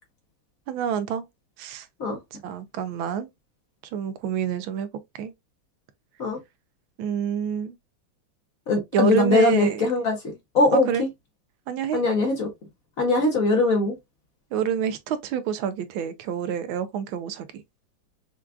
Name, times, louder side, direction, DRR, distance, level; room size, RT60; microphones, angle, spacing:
voice 1, 0.7-1.3 1.6-1.9 2.3-3.3 3.9-4.9 5.2-5.3 7.0-7.8 8.9-9.9 10.7-11.0 11.7-12.0 14.5-17.6, right 8 dB, 80° right, 1.4 m, -27 dB
voice 2, 8.7-11.1 11.9-12.5 13.0-13.9, left 2 dB, 55° left, 1.1 m, -21 dB
5.7 x 2.4 x 2.3 m
omnidirectional pair, 2.2 m